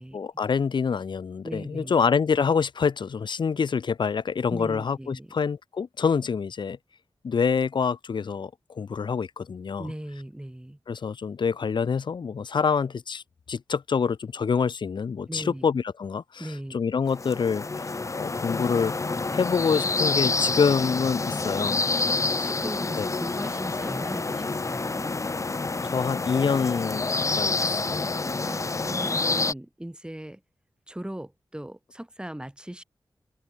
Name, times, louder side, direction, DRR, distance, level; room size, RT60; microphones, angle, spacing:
voice 1, 0.1-6.8 7.2-9.9 10.9-18.9 19.3-21.9 23.0-23.1 25.8-28.2, left 6 dB, 65° left, 0.7 m, -26 dB
voice 2, 1.4-2.0 4.5-5.3 9.8-10.8 15.3-15.7 16.4-16.8 22.2-25.1 28.4-30.4 30.9-32.8, right 1 dB, 10° right, 5.4 m, -38 dB
sound 1, 17.1-29.5, left 3 dB, 35° left, 1.0 m, -28 dB
wide cardioid pair, 75°, 8 cm